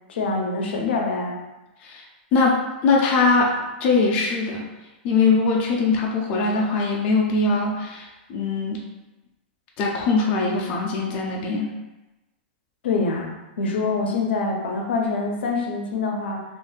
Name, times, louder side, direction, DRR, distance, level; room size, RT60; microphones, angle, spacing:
voice 1, 0.1-1.4 12.8-16.4, left 3 dB, 80° left, 1 dB, 0.5 m, -25 dB
voice 2, 2.3-3.5 3.8-4.6 5.0-8.8 9.8-11.7, left 3 dB, 25° left, -1 dB, 0.3 m, -21 dB
2.4 x 2.3 x 3.2 m, 1.0 s
supercardioid pair, 170°, 6 cm